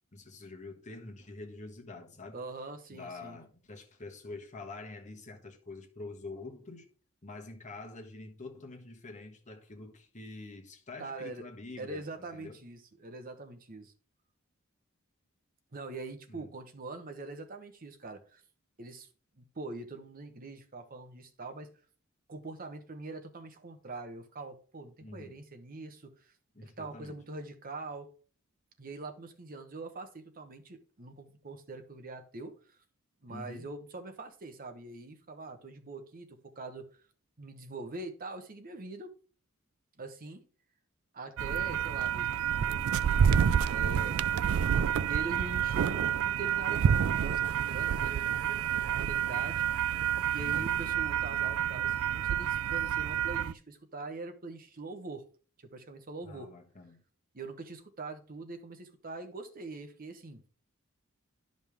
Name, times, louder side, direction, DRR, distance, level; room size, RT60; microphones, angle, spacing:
voice 1, 0.1-2.4 2.9-6.9 7.2-12.1 12.3-12.6 16.3-16.5 25.0-25.4 26.5-27.2 33.3-33.7 50.4-50.8 56.2-57.0, left 2 dB, 35° left, 1.4 m, -46 dB
voice 2, 2.3-3.4 11.0-11.5 11.8-13.9 15.7-18.4 18.8-19.1 19.3-21.7 22.3-26.3 26.6-28.1 28.8-32.5 33.2-37.0 37.4-39.1 40.0-40.4 41.1-43.3 43.6-44.2 45.1-49.6 50.3-55.2 55.6-56.5 57.3-60.4, right 3 dB, 45° right, 1.0 m, -43 dB
sound 1, 41.4-53.5, right 8 dB, 75° right, 0.3 m, -28 dB
10.5 x 5.3 x 3.4 m
head